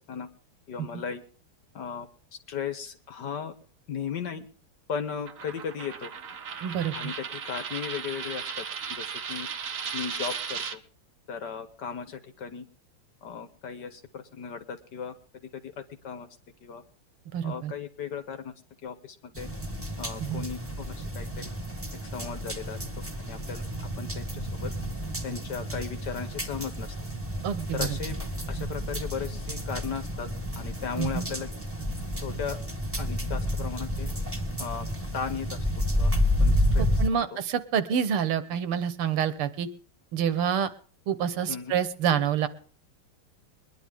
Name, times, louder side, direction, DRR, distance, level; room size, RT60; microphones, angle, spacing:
voice 1, 0.7-1.2 1.7-2.1 2.5-3.5 3.9-4.5 4.9-6.1 6.9-8.6 8.9-9.5 9.9-10.8 11.3-12.6 13.2-15.1 15.4-16.3 16.6-16.8 17.4-18.5 18.8-19.5 20.0-21.5 22.0-22.8 23.2-24.7 25.2-26.9 27.7-28.1 28.5-30.3 30.5-31.5 32.2-32.6 33.0-34.1 34.6-34.9 35.1-35.6 35.9-36.1 36.4-36.9 37.1-37.3 41.5-41.7, left 6 dB, 55° left, 9 dB, 1.6 m, -36 dB
Coin (dropping), 5.3-10.8, right 6 dB, 50° right, 1.0 m, -36 dB
voice 2, 6.6-6.9 17.3-17.7 20.2-20.4 27.4-28.0 31.0-31.3 36.8-39.7 40.1-40.7 41.1-42.5, right 8 dB, 80° right, 13 dB, 1.9 m, -27 dB
sound 1, 19.3-37.1, equal, 5° right, 1.5 m, -30 dB
22.5 x 10.5 x 3.6 m, 0.43 s
omnidirectional pair, 2.4 m